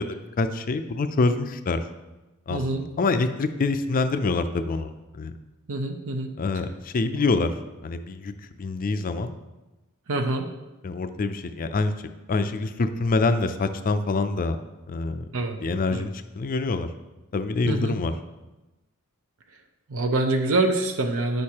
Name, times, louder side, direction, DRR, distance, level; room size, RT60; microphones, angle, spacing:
voice 1, 0.0-1.8 2.5-2.6 3.0-5.3 6.4-7.5 7.8-8.3 8.6-9.3 10.8-11.9 12.3-14.6 14.9-15.2 15.6-16.9 17.3-18.1, left 3 dB, 40° left, 9 dB, 0.4 m, -25 dB
voice 2, 2.5-2.8 5.7-6.3 7.1-7.3 10.1-10.5 15.3-15.6 15.9-16.0 17.7-18.0 19.9-21.4, right 2 dB, 65° right, 5 dB, 0.7 m, -25 dB
9.3 x 6.4 x 2.9 m, 1.1 s
head